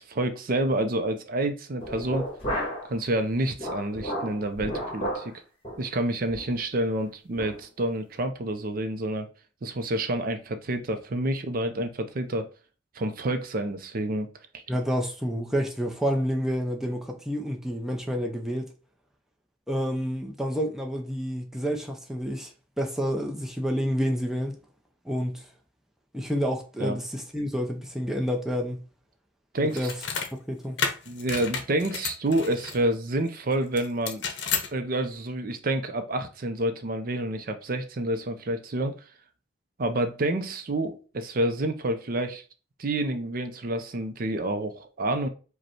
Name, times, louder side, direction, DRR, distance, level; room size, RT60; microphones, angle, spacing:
voice 1, 0.0-2.3 2.9-5.3 5.8-9.3 9.6-12.4 12.9-14.3 14.5-14.6 26.8-27.0 29.5-29.9 31.1-34.2 34.7-39.0 39.8-42.4 42.8-45.3, right 1 dB, 45° right, 0.5 m, -28 dB
sound 1, 1.8-2.9 3.3-5.3 5.6-5.8 6.3-6.5 6.9-7.0 7.4-7.6, equal, 30° left, 1.6 m, -33 dB
voice 2, 14.7-18.7 19.7-24.6 25.0-25.5 26.1-28.9 29.6-30.0 30.3-30.8, equal, ahead, 0.6 m, -29 dB
sound 2, 29.7-30.3 30.8-32.8 33.8-34.7, left 6 dB, 60° left, 0.8 m, -31 dB
5.1 x 2.2 x 4.4 m
head